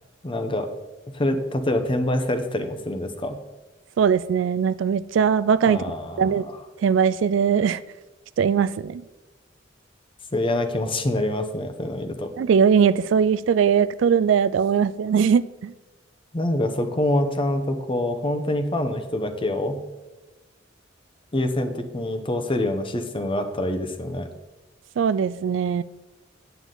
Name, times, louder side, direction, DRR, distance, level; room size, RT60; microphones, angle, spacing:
voice 1, 0.2-0.7 1.1-3.4 5.7-6.6 10.3-12.3 16.3-19.8 21.3-24.3, left 1 dB, 30° left, 7 dB, 0.8 m, -25 dB
voice 2, 4.0-5.8 6.2-6.4 6.8-7.8 8.4-9.0 12.4-15.7 25.0-25.8, right 7 dB, 85° right, 17 dB, 0.3 m, -20 dB
9.2 x 8.1 x 3.9 m, 1.1 s
head